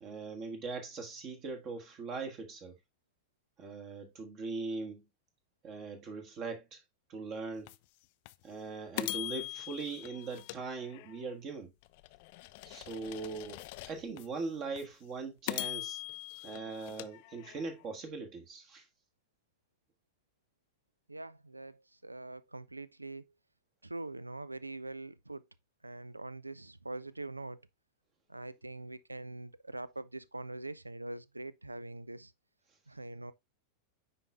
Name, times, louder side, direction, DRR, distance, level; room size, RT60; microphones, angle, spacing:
voice 1, 0.0-2.7 3.6-5.0 5.6-6.8 7.1-7.7 8.4-11.7 12.6-16.0 16.4-18.8, right 4 dB, 35° right, 1.5 m, -40 dB
sound 1, 7.7-7.8 8.2-8.3 9.0-11.3 11.8-14.3 14.8-14.9 15.5-17.8, left 20 dB, 50° left, 0.4 m, -42 dB
voice 2, 21.1-23.3 23.8-25.5 25.8-27.6 28.3-32.3 32.9-33.3, right 2 dB, 85° right, 0.3 m, -43 dB
10.0 x 4.2 x 2.3 m
figure-of-eight pair, 90°, 0 cm